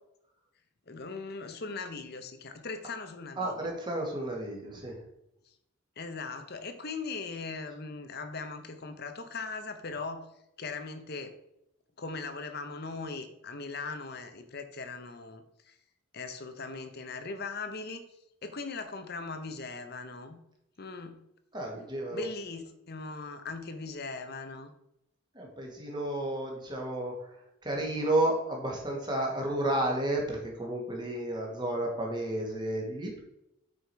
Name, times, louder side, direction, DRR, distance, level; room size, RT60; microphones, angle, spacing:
voice 1, 0.9-3.7 6.0-10.3 10.6-11.4 12.0-15.7 16.1-18.0 18.4-20.4 20.8-21.2 22.1-24.7, left 4 dB, 50° left, 8 dB, 0.8 m, -39 dB
voice 2, 3.4-5.0 21.5-22.3 25.3-27.3 27.6-33.2, right 1 dB, 20° right, -1 dB, 1.9 m, -32 dB
8.4 x 5.1 x 4.7 m, 0.82 s
head